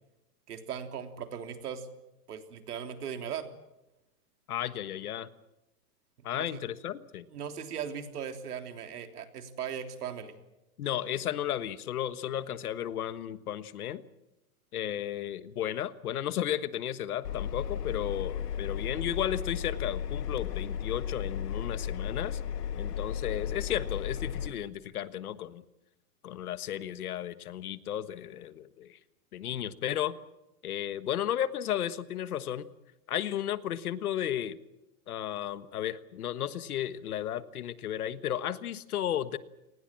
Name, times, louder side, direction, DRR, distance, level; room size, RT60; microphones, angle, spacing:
voice 1, 0.5-1.9 2.3-3.5 6.4-6.6 7.3-10.3, right 8 dB, 75° right, 6 dB, 3.5 m, -38 dB
voice 2, 4.5-5.3 6.2-7.3 10.8-14.0 14.7-22.4 22.7-25.6 26.2-29.0 29.3-30.1 30.6-32.7 33.1-34.6 35.1-39.4, left 11 dB, 70° left, 14 dB, 1.5 m, -34 dB
Engine, 17.2-24.5, left 8 dB, 85° left, 1.7 m, -34 dB
29.0 x 19.5 x 7.5 m, 0.96 s
supercardioid pair, 180°, 46 cm